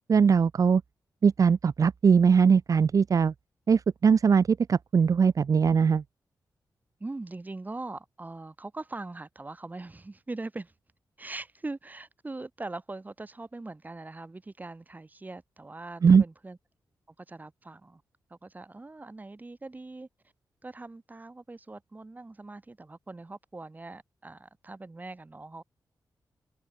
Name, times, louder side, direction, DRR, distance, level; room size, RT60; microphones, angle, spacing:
voice 1, 0.1-0.8 1.2-3.3 3.7-6.0 16.0-16.2, right 6 dB, 50° right, 0.7 m, -21 dB
voice 2, 7.0-10.7 11.2-16.6 17.1-18.0 18.3-20.1 20.6-25.6, right 2 dB, 25° right, 3.1 m, -41 dB
wide cardioid pair, 105°, 7 cm